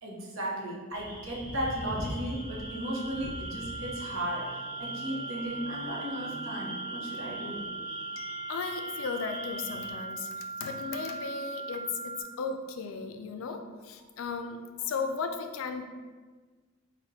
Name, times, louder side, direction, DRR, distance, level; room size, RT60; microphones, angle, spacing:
voice 1, 0.0-7.7 14.8-14.9, right 1 dB, 80° right, -3 dB, 0.9 m, -35 dB
sound 1, 0.9-9.9, equal, 20° right, 0.8 m, -42 dB
sound 2, 2.3-12.2, right 3 dB, 25° left, 0.6 m, -40 dB
voice 2, 8.2-14.6 14.8-15.8, left 5 dB, 85° left, 6 dB, 0.4 m, -36 dB
4.1 x 2.2 x 3.9 m, 1.4 s
head